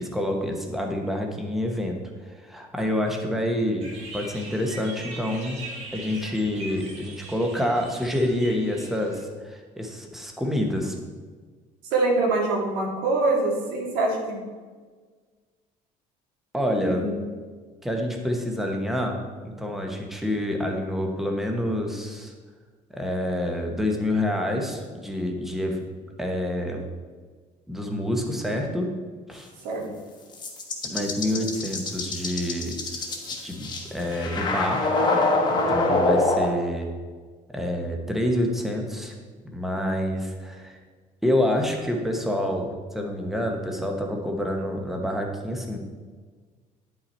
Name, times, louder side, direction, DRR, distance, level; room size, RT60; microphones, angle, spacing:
voice 1, 0.0-2.0 2.2-5.6 5.9-10.9 16.5-17.1 17.8-19.2 19.4-22.3 22.9-25.8 26.2-26.9 27.7-28.9 29.3-29.5 30.8-32.7 33.4-34.9 35.5-36.9 37.5-39.1 39.4-40.8 41.2-45.8, left 1 dB, ahead, 2 dB, 1.0 m, -27 dB
sound 1, 3.8-9.2, right 2 dB, 45° right, 2.0 m, -41 dB
voice 2, 11.9-14.4 16.8-17.2 29.6-29.9, right 2 dB, 85° right, -1 dB, 2.2 m, -24 dB
sound 2, 30.3-36.5, left 2 dB, 30° left, 1.2 m, -24 dB
10.0 x 5.6 x 4.3 m, 1.5 s
cardioid pair, 160°, 15 cm